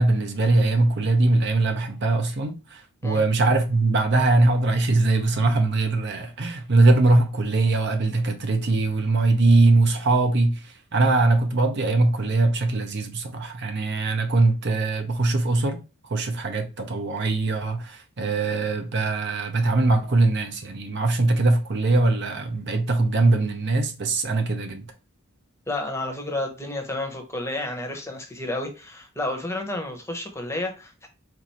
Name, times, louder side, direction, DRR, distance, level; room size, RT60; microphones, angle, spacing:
voice 1, 0.0-15.8 16.1-24.9, right 2 dB, 55° right, 0.7 m, -21 dB
voice 2, 25.7-31.1, left 2 dB, 15° left, 0.8 m, -31 dB
4.6 x 2.5 x 4.1 m
head